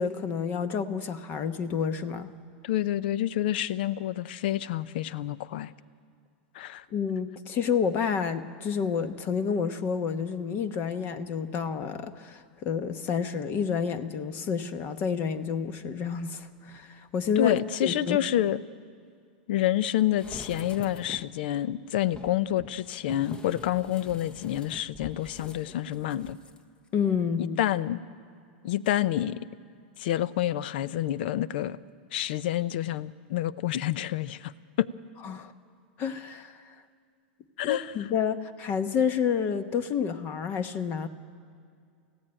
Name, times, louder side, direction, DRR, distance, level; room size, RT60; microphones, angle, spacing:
voice 1, 0.0-2.3 6.9-18.2 26.9-27.6 35.2-35.5 36.0-36.6 37.6-41.1, left 7 dB, 35° left, 11 dB, 1.1 m, -29 dB
voice 2, 2.6-5.7 6.5-6.8 17.4-18.6 19.5-26.4 27.6-28.0 28.6-29.5 30.0-31.8 32.1-34.5 34.8-34.9 37.6-37.9, left 12 dB, 70° left, 18 dB, 0.6 m, -28 dB
sound 1, 20.1-21.4 22.1-26.6 26.9-27.0, left 3 dB, 15° left, 0.9 m, -45 dB
24.5 x 15.5 x 8.9 m, 2.3 s
supercardioid pair, 130°, 6 cm